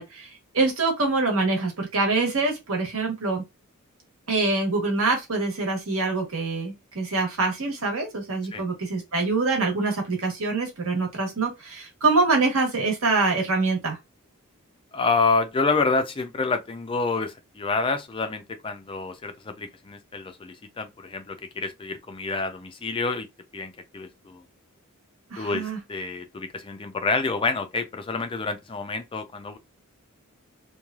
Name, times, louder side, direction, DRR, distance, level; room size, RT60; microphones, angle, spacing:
voice 1, 0.0-3.4 4.3-14.0 25.3-25.8, right 3 dB, 65° right, 1.2 m, -25 dB
voice 2, 14.9-23.3 23.5-24.4 25.4-29.6, left 4 dB, 25° left, 0.4 m, -28 dB
3.0 x 2.3 x 2.3 m
head